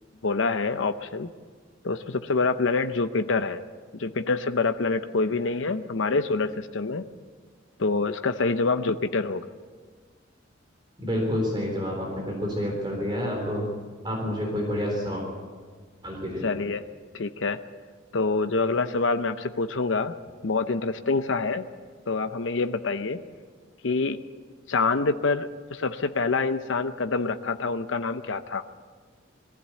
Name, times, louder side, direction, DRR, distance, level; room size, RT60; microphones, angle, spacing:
voice 1, 0.2-1.3 1.8-3.6 3.9-7.1 7.8-9.4 16.4-16.8 17.1-17.6 18.1-20.1 20.4-21.7 22.1-23.3 23.8-24.2 24.7-28.6, left 3 dB, 75° left, 9 dB, 0.7 m, -26 dB
voice 2, 11.0-13.7 14.0-15.2 16.0-16.5, equal, 25° right, 0 dB, 3.8 m, -28 dB
21.5 x 15.0 x 8.4 m, 1.5 s
head